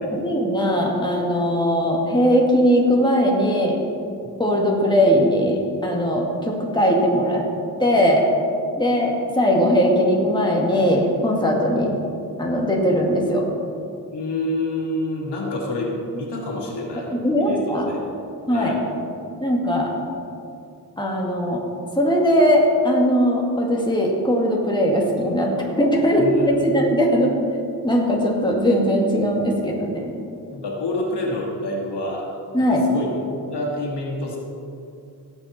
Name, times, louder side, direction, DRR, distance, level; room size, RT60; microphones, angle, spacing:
voice 1, 0.1-3.8 4.4-7.5 7.8-8.2 8.8-11.9 12.4-13.5 17.1-17.9 18.5-18.7 19.4-19.9 21.0-21.6 21.9-27.3 27.8-30.1 32.5-32.8, equal, 10° left, -2 dB, 2.2 m, -19 dB
voice 2, 14.1-17.1 17.4-18.0 18.5-18.8 26.2-26.7 30.5-32.3 32.6-34.4, left 1 dB, 90° left, -2 dB, 2.4 m, -28 dB
17.5 x 8.0 x 4.3 m, 2.5 s
wide cardioid pair, 85°, 40 cm